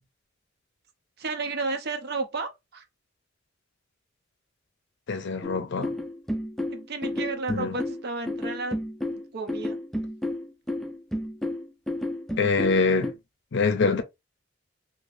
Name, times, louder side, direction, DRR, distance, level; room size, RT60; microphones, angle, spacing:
voice 1, 1.2-2.8 6.7-8.8 9.3-9.8, right 3 dB, 55° right, 0.6 m, -32 dB
voice 2, 5.1-5.9 7.5-7.8 12.4-13.1 13.5-14.0, left 4 dB, 60° left, 0.5 m, -24 dB
sound 1, 5.4-13.1, left 1 dB, ahead, 0.4 m, -31 dB
3.3 x 2.8 x 2.6 m
head